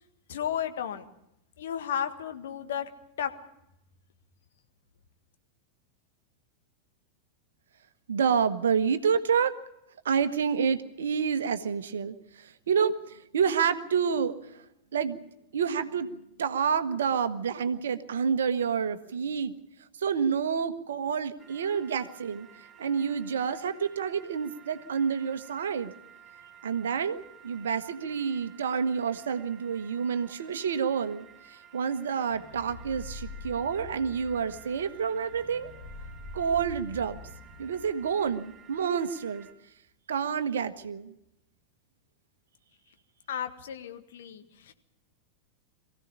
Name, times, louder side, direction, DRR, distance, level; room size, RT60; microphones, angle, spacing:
voice 1, 0.3-1.0 1.6-2.9 3.2-3.3 43.3-44.7, left 9 dB, 60° left, 8 dB, 1.6 m, -33 dB
voice 2, 8.1-9.5 10.0-14.5 14.9-15.2 15.5-19.5 20.0-22.5 22.8-25.9 26.6-35.7 36.3-37.2 37.6-39.5 40.1-41.1, right 6 dB, 65° right, 11 dB, 1.2 m, -28 dB
sound 1, 21.4-39.5, right 9 dB, 20° right, 5.8 m, -54 dB
sound 2, 32.3-39.0, left 2 dB, 30° left, 7.4 m, -45 dB
23.0 x 16.0 x 8.4 m, 0.82 s
figure-of-eight pair, 90°, 0 cm